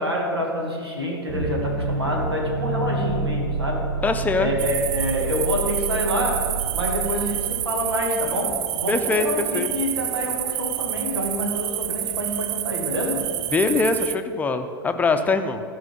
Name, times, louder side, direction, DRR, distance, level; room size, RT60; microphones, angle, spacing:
voice 1, 0.0-3.9 4.4-13.3, left 1 dB, 85° right, -1 dB, 2.2 m, -27 dB
sound 1, 1.3-8.5, right 4 dB, 50° right, 1.2 m, -29 dB
voice 2, 4.0-4.5 8.9-9.7 13.5-15.7, left 3 dB, 10° left, 7 dB, 0.7 m, -23 dB
sound 2, 4.6-14.1, right 13 dB, 30° right, 0.4 m, -28 dB
14.5 x 5.6 x 5.3 m, 2.4 s
figure-of-eight pair, 100°, 13 cm